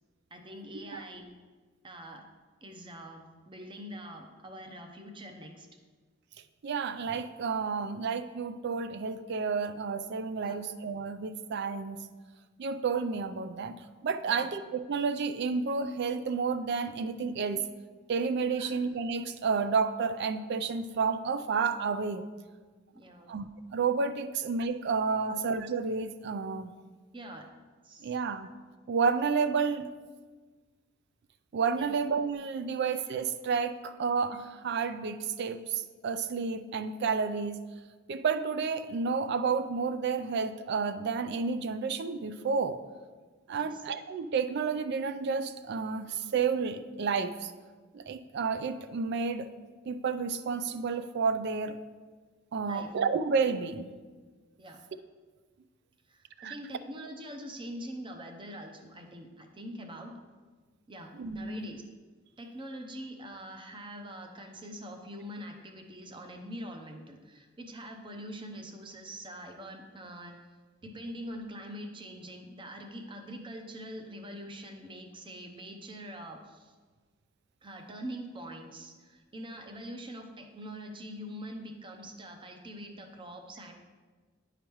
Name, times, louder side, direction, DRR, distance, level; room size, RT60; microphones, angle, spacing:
voice 1, 0.3-1.3 1.8-2.2 2.6-5.7 10.4-10.6 14.2-14.5 18.6-18.7 22.9-23.4 25.2-25.3 27.1-27.5 27.8-28.1 31.8-31.9 43.5-43.8 52.6-52.9 54.6-54.8 56.1-60.1 60.9-61.8 62.4-70.4 70.8-76.7 77.6-83.7, equal, 25° right, 4 dB, 0.7 m, -44 dB
voice 2, 6.6-12.0 12.6-13.7 14.0-17.7 18.1-22.3 23.3-26.7 28.0-28.5 28.9-29.9 31.5-37.6 38.1-42.8 43.5-47.5 47.9-49.5 49.9-51.8 52.5-53.9 56.4-56.5 61.1-61.7, right 5 dB, 55° right, 11 dB, 0.4 m, -31 dB
10.0 x 5.0 x 3.1 m, 1.4 s
head